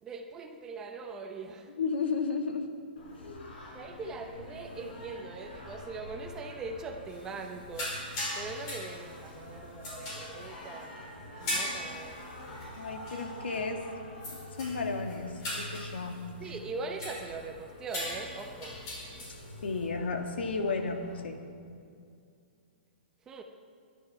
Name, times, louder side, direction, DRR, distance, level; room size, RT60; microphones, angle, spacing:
voice 1, 0.0-1.7 3.7-7.9 8.3-11.0 11.4-12.2 16.4-18.8 23.3-23.4, right 3 dB, 10° right, 4 dB, 0.6 m, -41 dB
voice 2, 1.8-2.7 3.2-3.5 11.5-11.6 12.8-13.8 14.6-16.2 19.6-21.4, left 4 dB, 90° left, 4 dB, 1.9 m, -33 dB
Singing, 3.0-21.2, left 1 dB, 50° left, 4.9 m, -47 dB
sound 1, 7.1-7.5 7.7-9.4 9.8-10.9 11.4-12.8 13.1-13.3 13.5-13.6 14.2-14.8 15.1-17.5 17.9-19.6, left 1 dB, 30° left, 4.8 m, -39 dB
21.0 x 11.0 x 4.8 m, 2.3 s
hypercardioid pair, 175°, 6 cm